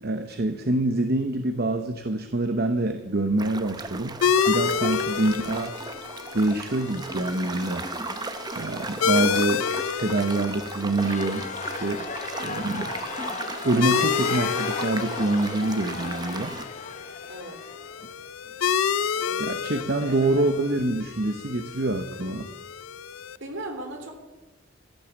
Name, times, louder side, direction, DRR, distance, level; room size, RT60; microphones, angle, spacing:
voice 1, 0.0-4.2 4.5-5.7 6.3-7.9 8.5-9.7 10.0-12.0 12.4-12.9 13.6-16.5 19.4-22.5, right 2 dB, 50° right, 7 dB, 0.8 m, -26 dB
sound 1, 3.4-16.7, right 3 dB, 20° right, 0.7 m, -36 dB
sound 2, 4.2-23.4, left 7 dB, 85° left, 0.5 m, -30 dB
sound 3, 11.0-20.9, left 5 dB, 35° left, 0.9 m, -38 dB
voice 2, 17.3-17.6 19.1-19.4 20.0-20.2 23.4-24.1, right 1 dB, 65° right, 4 dB, 3.4 m, -38 dB
15.5 x 10.5 x 7.2 m, 1.1 s
head